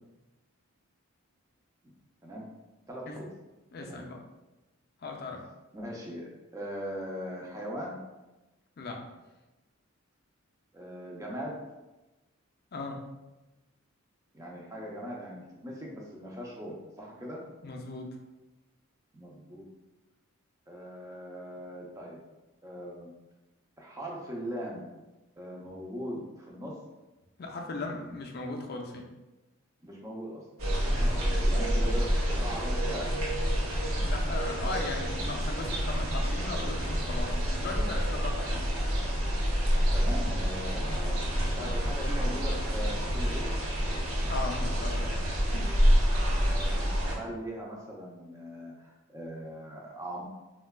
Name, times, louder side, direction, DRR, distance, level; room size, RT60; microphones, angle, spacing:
voice 1, 2.9-3.3 3.8-4.0 5.7-8.0 10.7-11.6 14.3-17.4 19.1-19.6 20.7-22.2 22.6-23.1 23.8-24.9 25.4-26.8 29.8-30.4 31.1-33.1 39.9-41.2 41.6-43.5 46.6-50.2, equal, 15° right, -2 dB, 0.5 m, -40 dB
voice 2, 3.7-4.2 5.0-5.4 8.8-9.0 12.7-13.0 17.6-18.2 27.4-29.0 30.9-31.1 33.9-38.7 41.6-41.7 44.3-45.2, left 3 dB, 45° left, 2 dB, 0.4 m, -38 dB
sound 1, 30.6-47.2, equal, 75° right, 0.6 m, -28 dB
4.3 x 2.2 x 2.2 m, 1.1 s
head